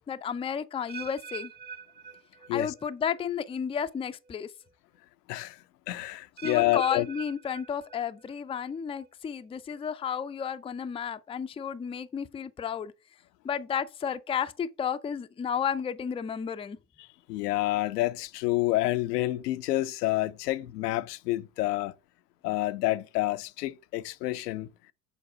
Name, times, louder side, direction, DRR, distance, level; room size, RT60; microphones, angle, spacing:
voice 1, 0.1-1.5 2.5-4.5 6.4-12.9 13.4-16.8, left 7 dB, 10° left, 0.5 m, -32 dB
sound 1, 0.9-2.9 3.2-3.6 4.3-4.4 6.4-8.3 8.6-9.1 9.7-9.8, right 7 dB, 20° right, 0.8 m, -44 dB
voice 2, 5.3-7.1 17.3-21.9 22.4-24.7, left 17 dB, 75° left, 0.7 m, -28 dB
7.1 x 4.6 x 5.0 m
hypercardioid pair, 75°, 49 cm